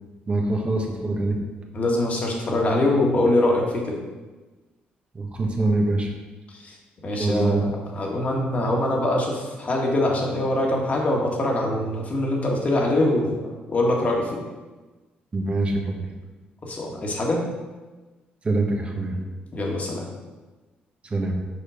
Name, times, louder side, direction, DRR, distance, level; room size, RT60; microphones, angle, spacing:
voice 1, 0.3-1.4 5.1-6.1 7.2-7.7 15.3-16.0 18.4-19.2 21.1-21.3, right 2 dB, 35° right, 1 dB, 1.4 m, -24 dB
voice 2, 1.7-4.0 6.5-6.7 7.0-14.4 16.6-17.4 19.5-20.1, left 1 dB, 40° left, -1 dB, 1.9 m, -23 dB
6.6 x 5.0 x 5.0 m, 1.2 s
cardioid pair, 75°, 4 cm